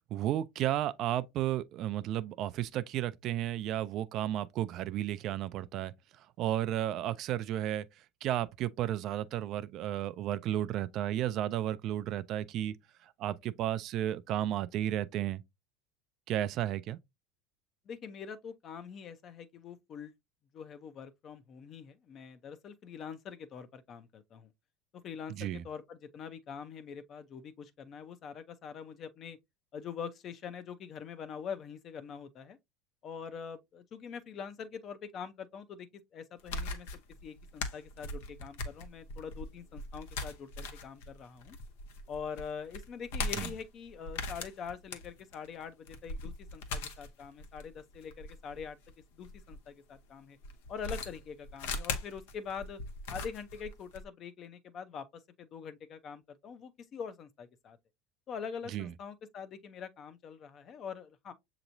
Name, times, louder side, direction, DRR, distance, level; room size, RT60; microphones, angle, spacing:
voice 1, 0.1-5.9 6.4-7.9 8.2-12.8 13.2-15.4 16.3-17.0 25.3-25.6 43.4-43.5 58.7-58.9, right 12 dB, 50° right, 0.4 m, -33 dB
voice 2, 17.9-20.1 20.5-24.5 25.0-29.4 29.7-32.6 33.0-41.6 42.1-48.8 49.1-50.4 50.7-52.8 53.1-57.8 58.3-61.3, left 6 dB, 40° left, 0.7 m, -44 dB
sound 1, 36.4-49.6 50.4-54.0, left 3 dB, 80° left, 0.9 m, -40 dB
6.8 x 3.0 x 2.6 m
supercardioid pair, 120°, 0 cm